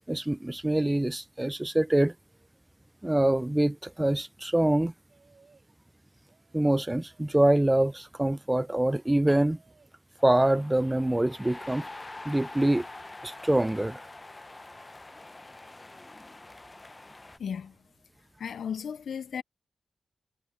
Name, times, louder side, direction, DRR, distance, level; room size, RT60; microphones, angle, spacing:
voice 1, 0.1-2.1 3.0-4.9 6.5-9.6 10.2-11.9 12.3-12.9 13.2-14.0, right 1 dB, 15° right, 0.4 m, -25 dB
sound 1, 5.1-5.7 6.2-8.1 8.7-9.9 10.4-11.5, right 5 dB, 55° right, 4.0 m, -63 dB
sound 2, 10.2-17.4, left 2 dB, 25° left, 0.8 m, -45 dB
voice 2, 17.4-17.7 18.4-19.4, left 7 dB, 80° left, 0.5 m, -35 dB
cardioid pair, 75°, 0 cm